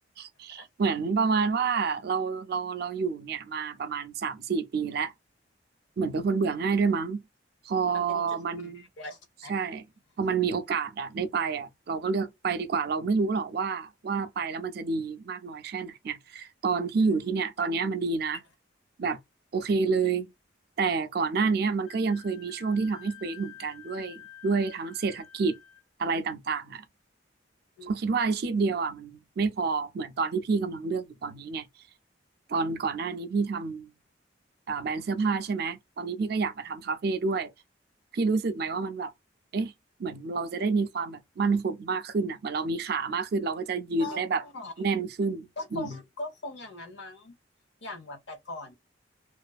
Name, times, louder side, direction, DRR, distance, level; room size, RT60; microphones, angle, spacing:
voice 1, 0.2-5.1 6.0-7.2 7.6-8.8 9.5-9.9 10.2-18.4 19.0-19.2 19.5-20.3 20.8-25.6 26.0-26.8 27.9-31.7 32.5-33.9 34.7-37.5 38.1-39.1 39.5-39.7 40.0-44.4 44.8-46.0, right 4 dB, 55° right, 0.4 m, -29 dB
voice 2, 7.9-9.5 17.0-17.4 27.8-28.0 44.0-44.7 45.6-47.3 47.8-48.8, left 2 dB, 75° left, 0.8 m, -41 dB
Wind instrument woodwind instrument, 21.9-25.8, left 11 dB, 25° left, 1.1 m, -50 dB
2.5 x 2.4 x 2.3 m
head